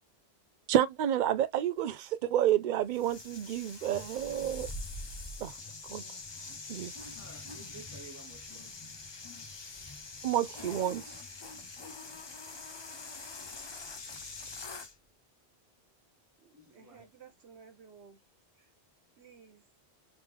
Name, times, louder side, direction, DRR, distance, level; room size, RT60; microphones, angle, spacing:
voice 1, 0.7-4.7 5.4-5.5 5.9-6.0 6.7-6.9 10.2-11.1, right 11 dB, 60° right, 0.5 m, -29 dB
sound 1, 2.9-14.9, left 3 dB, 30° left, 0.6 m, -44 dB
voice 2, 7.2-8.7 11.8-12.2 16.5-17.0, right 2 dB, 15° right, 1.3 m, -53 dB
voice 3, 16.4-18.2 18.6-18.7 19.2-19.6, right 6 dB, 75° right, 1.1 m, -56 dB
3.3 x 2.9 x 3.4 m
omnidirectional pair, 1.1 m